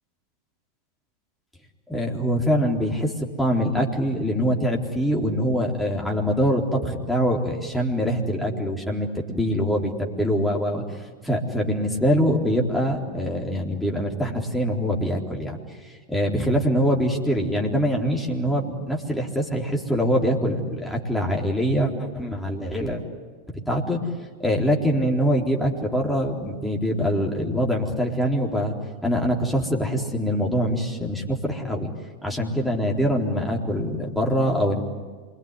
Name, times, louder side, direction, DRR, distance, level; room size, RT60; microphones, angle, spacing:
voice 1, 1.9-3.1 3.4-10.8 11.2-15.6 16.1-23.0 23.7-24.0 24.4-28.7 29.0-31.9 32.2-34.8, equal, 5° left, -1 dB, 3.9 m, -24 dB
27.5 x 22.5 x 9.8 m, 1.5 s
figure-of-eight pair, 90°, 0 cm